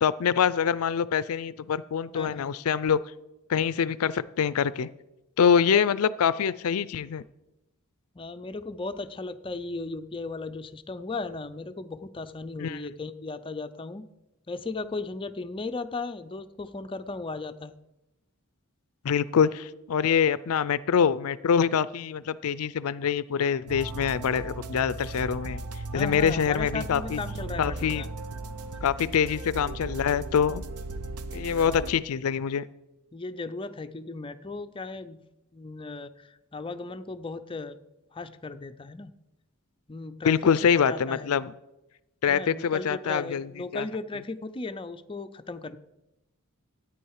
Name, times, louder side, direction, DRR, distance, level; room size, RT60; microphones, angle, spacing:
voice 1, 0.0-3.0 3.5-4.9 5.4-7.2 12.6-12.8 19.0-25.6 25.9-27.2 27.6-28.0 28.8-30.6 31.3-32.6 40.2-41.5 42.2-43.9, left 7 dB, 75° left, 18 dB, 0.4 m, -25 dB
voice 2, 2.1-2.5 5.7-5.9 8.1-14.1 14.5-17.8 25.9-28.1 31.6-31.9 33.1-35.2 35.5-37.8 38.1-39.1 39.9-40.4 40.9-41.4 42.3-45.8, left 3 dB, 25° left, 10 dB, 0.5 m, -36 dB
sound 1, 23.7-31.9, right 2 dB, 90° right, 0.8 m, -37 dB
13.5 x 9.3 x 4.8 m, 0.95 s
head